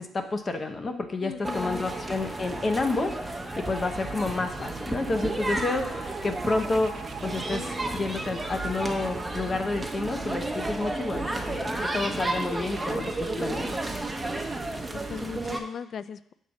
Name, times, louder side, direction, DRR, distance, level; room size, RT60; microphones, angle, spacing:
voice 1, 0.0-13.8, left 3 dB, 35° left, 7 dB, 0.7 m, -30 dB
voice 2, 1.2-1.9 14.9-16.3, left 7 dB, 60° left, 16 dB, 0.3 m, -38 dB
sound 1, 1.4-15.6, right 2 dB, 15° right, 0.8 m, -32 dB
sound 2, 3.8-11.3, right 7 dB, 55° right, 0.4 m, -45 dB
6.3 x 4.1 x 6.2 m, 0.76 s
cardioid pair, 90°, 0 cm